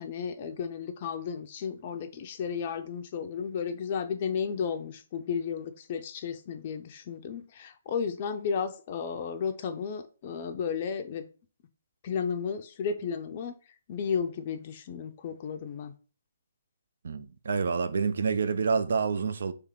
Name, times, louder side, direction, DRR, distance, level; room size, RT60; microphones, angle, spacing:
voice 1, 0.0-11.2 12.0-13.5 13.9-15.9, left 6 dB, 40° left, 0.4 m, -33 dB
voice 2, 17.0-19.5, right 5 dB, 65° right, 0.4 m, -28 dB
3.4 x 2.9 x 3.6 m
figure-of-eight pair, 135°, 0 cm